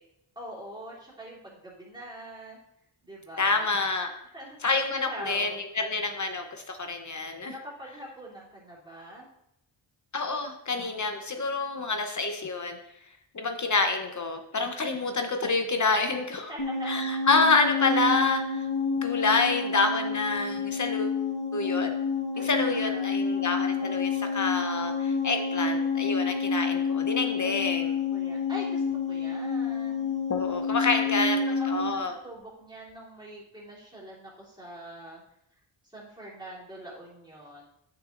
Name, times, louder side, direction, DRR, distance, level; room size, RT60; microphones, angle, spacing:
voice 1, 0.3-2.6 3.0-3.8 4.3-4.6 4.9-5.6 7.4-9.3 16.5-17.3 22.3-23.4 27.4-27.6 28.1-30.2 30.8-31.0 31.4-35.2 35.8-37.6, equal, 10° right, -6 dB, 2.7 m, -43 dB
voice 2, 3.4-4.1 4.6-7.5 10.1-12.8 13.3-16.5 16.9-18.7 19.0-21.2 21.5-21.9 22.4-28.0 30.3-31.4 31.7-32.2, left 3 dB, 40° left, 5 dB, 0.8 m, -27 dB
sound 1, 16.6-32.0, left 5 dB, 80° left, 1.5 m, -29 dB
8.8 x 6.1 x 2.5 m, 0.80 s
wide cardioid pair, 95°, 48 cm